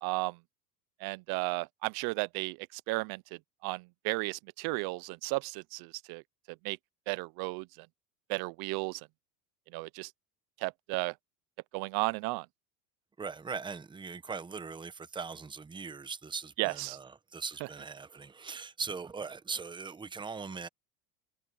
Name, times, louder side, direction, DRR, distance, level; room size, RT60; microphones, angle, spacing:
voice 1, 0.0-0.3 1.0-3.2 3.6-6.2 6.6-6.8 7.1-7.6 8.3-9.0 9.7-10.1 10.6-11.1 11.7-12.5 16.6-17.0, right 25 dB, 55° right, 0.7 m, -34 dB
voice 2, 13.2-20.7, right 5 dB, 10° right, 0.9 m, -40 dB
supercardioid pair, 115°, 46 cm